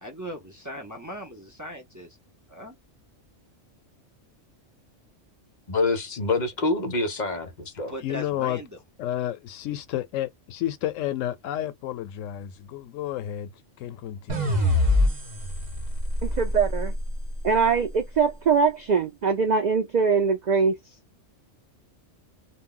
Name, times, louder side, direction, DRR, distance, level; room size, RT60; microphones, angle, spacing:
voice 1, 0.0-2.2 2.5-2.7 7.9-8.8, equal, 20° right, 0.5 m, -38 dB
voice 2, 5.7-7.9, left 3 dB, 45° left, 0.7 m, -26 dB
voice 3, 8.0-8.6 9.0-13.5 13.8-14.6, left 12 dB, 90° left, 0.9 m, -31 dB
sound 1, 14.3-17.5, left 1 dB, 40° right, 1.0 m, -25 dB
voice 4, 16.2-16.9 17.4-20.8, right 5 dB, 80° right, 0.4 m, -22 dB
2.3 x 2.1 x 3.7 m
omnidirectional pair, 1.3 m